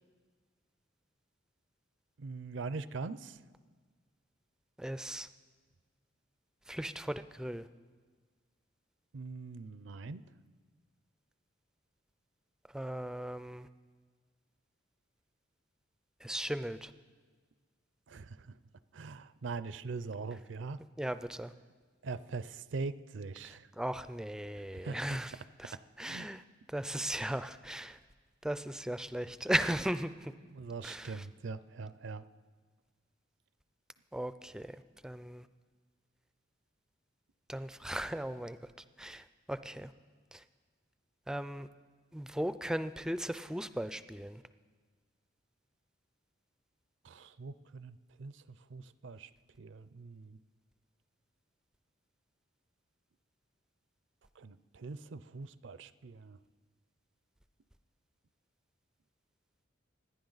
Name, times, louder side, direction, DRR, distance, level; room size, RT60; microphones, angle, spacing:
voice 1, 2.2-3.4 9.1-10.2 18.1-18.6 18.9-20.8 22.0-23.7 24.6-25.2 25.6-26.4 30.4-32.2 47.0-49.3 49.6-50.4 54.4-56.4, right 4 dB, 65° right, 15 dB, 0.5 m, -42 dB
voice 2, 4.8-5.3 6.7-7.7 12.7-13.7 16.2-16.9 21.0-21.5 23.8-25.3 25.6-26.4 26.7-28.0 28.4-30.3 30.8-31.1 34.1-34.8 35.0-35.5 37.5-38.6 39.0-39.9 40.3-40.4 41.3-41.7 42.1-44.4, right 1 dB, 5° right, 12 dB, 0.3 m, -37 dB
25.0 x 10.0 x 4.0 m, 1.5 s
head